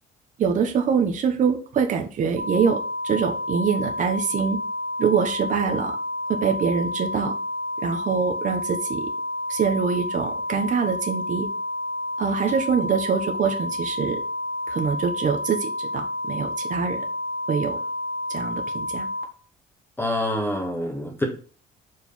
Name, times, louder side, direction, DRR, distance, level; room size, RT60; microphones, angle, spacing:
voice 1, 0.4-2.8 3.0-4.6 5.0-6.0 6.3-7.3 7.8-9.1 9.5-11.5 12.2-14.2 14.7-17.0 17.5-17.8 18.3-19.1, right 6 dB, 50° right, 4 dB, 1.1 m, -24 dB
sound 1, 2.4-19.2, left 1 dB, 70° right, 1.7 m, -30 dB
voice 2, 20.0-21.2, left 1 dB, 15° left, -1 dB, 1.7 m, -26 dB
5.1 x 4.8 x 5.6 m, 0.40 s
cardioid pair, 110°, 17 cm